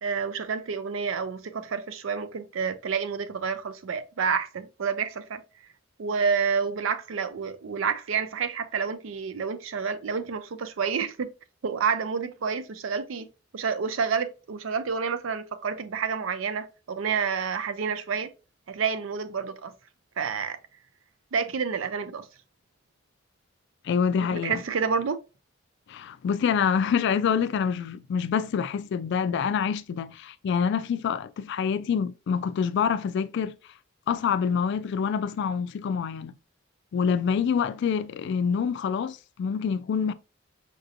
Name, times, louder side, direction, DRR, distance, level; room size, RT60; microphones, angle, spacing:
voice 1, 0.0-5.4 6.0-11.3 11.6-13.3 13.5-18.3 18.7-19.7 20.2-20.6 21.3-22.3 24.2-25.2, right 6 dB, 80° right, 0.5 m, -29 dB
voice 2, 23.8-24.6 25.9-33.6 34.1-36.3 36.9-40.1, left 6 dB, 60° left, 0.3 m, -26 dB
5.1 x 2.7 x 2.5 m
head